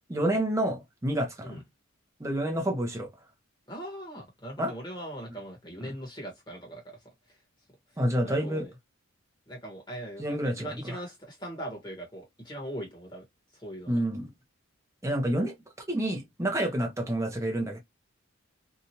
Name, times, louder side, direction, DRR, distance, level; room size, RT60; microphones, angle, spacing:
voice 1, 0.1-1.6 2.2-3.1 4.6-4.7 5.8-5.9 8.0-8.7 10.2-11.0 13.9-14.3 15.0-15.5 15.9-17.8, right 1 dB, 15° right, 0.6 m, -29 dB
voice 2, 3.7-7.1 8.2-8.7 9.5-10.2 10.5-13.2 13.5-14.0, right 1 dB, 20° left, 1.1 m, -40 dB
2.8 x 2.3 x 2.7 m
head